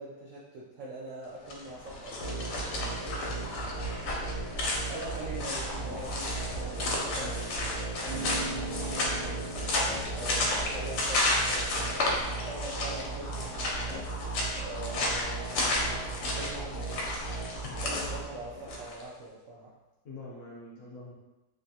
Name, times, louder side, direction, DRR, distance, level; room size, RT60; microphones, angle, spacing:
voice 1, 0.0-3.6 4.9-7.5 7.7-9.5 10.1-14.1 14.5-17.2 17.7-19.7, right 2 dB, 75° right, -6 dB, 0.7 m, -43 dB
sound 1, 1.4-19.0, left 2 dB, 85° left, 1.2 m, -33 dB
sound 2, 2.2-18.8, right 3 dB, 45° left, 0.5 m, -37 dB
voice 2, 7.2-7.8 20.0-21.1, left 2 dB, 60° left, -5 dB, 0.8 m, -45 dB
Piano, 8.1-18.2, right 2 dB, 90° right, 1.4 m, -44 dB
3.4 x 2.3 x 2.7 m, 1.0 s
omnidirectional pair, 1.8 m